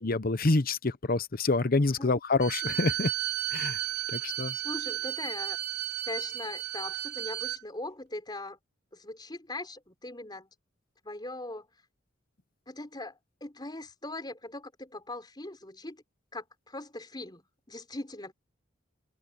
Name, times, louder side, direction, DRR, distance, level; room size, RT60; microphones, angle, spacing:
voice 1, 0.0-3.1 3.5-3.8 4.1-4.5, left 3 dB, 45° left, 0.9 m, -27 dB
Bowed string instrument, 2.4-7.6, right 14 dB, 55° right, 3.4 m, -34 dB
voice 2, 4.5-5.6 6.1-8.6 8.9-10.5 11.0-11.7 12.7-16.0 16.3-18.3, left 2 dB, 20° left, 4.5 m, -40 dB
open air
head